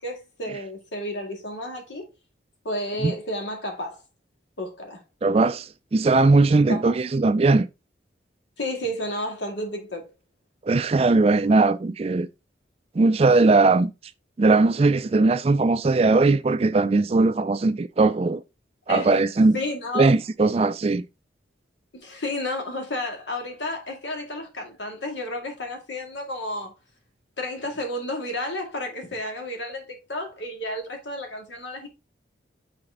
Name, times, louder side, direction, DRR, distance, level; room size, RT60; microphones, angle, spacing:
voice 1, 0.0-2.1 2.6-4.0 4.6-5.0 6.7-6.8 8.6-10.1 18.9-19.2 19.5-20.1 21.9-26.7 27.4-31.9, left 1 dB, 80° left, 2.0 m, -31 dB
voice 2, 5.2-7.7 10.6-12.3 13.0-13.9 14.4-18.4 18.9-19.6 19.9-21.1, right 3 dB, 30° right, 0.3 m, -19 dB
6.0 x 4.3 x 3.8 m
head